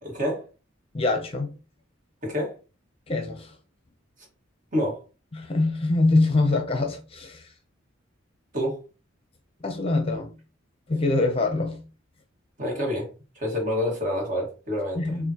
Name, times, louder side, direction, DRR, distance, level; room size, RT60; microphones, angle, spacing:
voice 1, 0.0-0.5 2.2-2.6 4.7-5.0 8.5-8.8 12.6-13.1 13.3-15.1, left 1 dB, 40° right, 1.7 m, -27 dB
voice 2, 0.9-1.5 3.1-3.5 5.3-7.4 9.6-10.3 10.9-11.8 14.9-15.3, left 2 dB, 30° left, 0.7 m, -24 dB
6.8 x 2.6 x 2.9 m
head